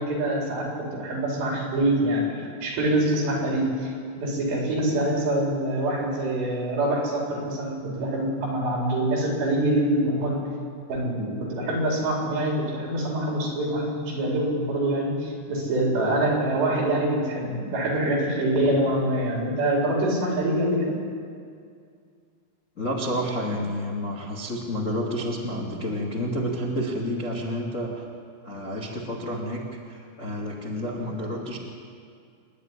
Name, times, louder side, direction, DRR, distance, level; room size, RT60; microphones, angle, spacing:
voice 1, 0.0-10.4 10.9-21.0, right 1 dB, 60° right, -2 dB, 6.0 m, -25 dB
voice 2, 22.8-28.0 28.4-31.6, equal, 45° left, -1 dB, 0.9 m, -30 dB
27.5 x 11.5 x 9.8 m, 2.3 s
omnidirectional pair, 5.8 m